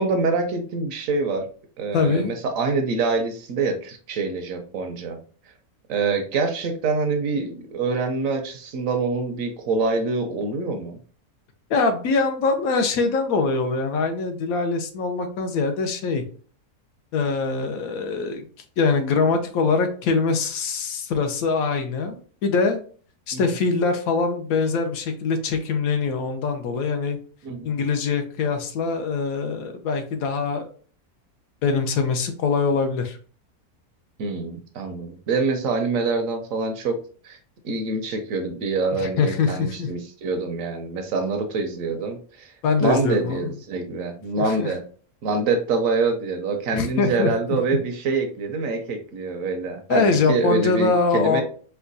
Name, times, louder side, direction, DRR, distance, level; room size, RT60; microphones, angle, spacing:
voice 1, 0.0-1.5 1.8-5.2 5.9-11.0 23.3-23.4 27.4-27.8 34.2-37.4 37.6-42.5 42.8-44.8 45.2-51.4, right 3 dB, 70° right, 5 dB, 0.9 m, -25 dB
voice 2, 1.9-2.3 11.7-16.2 17.1-18.4 18.8-22.8 23.3-27.2 27.6-30.7 31.6-33.2 39.0-39.9 42.6-43.5 44.4-44.7 46.7-47.3 49.9-51.4, left 4 dB, 75° left, 6 dB, 1.0 m, -23 dB
4.4 x 2.2 x 2.5 m, 0.43 s
omnidirectional pair, 1.6 m